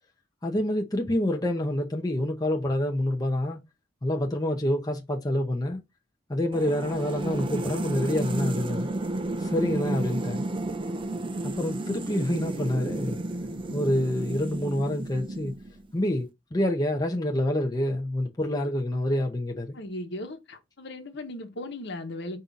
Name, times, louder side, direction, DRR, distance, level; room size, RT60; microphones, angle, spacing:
voice 1, 0.4-3.6 4.0-5.8 6.3-8.9 9.4-10.5 11.4-13.2 13.7-15.5 15.9-19.8, left 1 dB, 20° left, 0.7 m, -27 dB
sound 1, 6.5-15.9, right 2 dB, 25° right, 0.5 m, -32 dB
voice 2, 19.7-22.4, left 1 dB, 65° left, 1.1 m, -37 dB
5.4 x 2.7 x 3.6 m
head